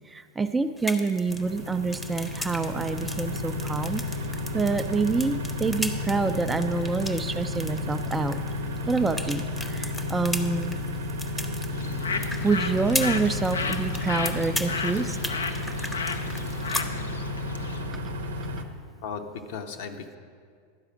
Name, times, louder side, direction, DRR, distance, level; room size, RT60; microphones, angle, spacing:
voice 1, 0.1-4.0 4.5-8.4 8.9-10.8 12.4-15.2, right 4 dB, 15° right, 9 dB, 0.4 m, -27 dB
sound 1, 0.8-16.8, left 1 dB, 10° left, 0.8 m, -38 dB
sound 2, 1.3-18.6, left 2 dB, 80° right, 0.7 m, -32 dB
Bird, 11.7-17.9, left 5 dB, 80° left, 0.5 m, -34 dB
voice 2, 19.0-20.2, left 5 dB, 60° left, 5 dB, 0.8 m, -36 dB
11.5 x 4.9 x 6.1 m, 2.1 s
hypercardioid pair, 90°, 0 cm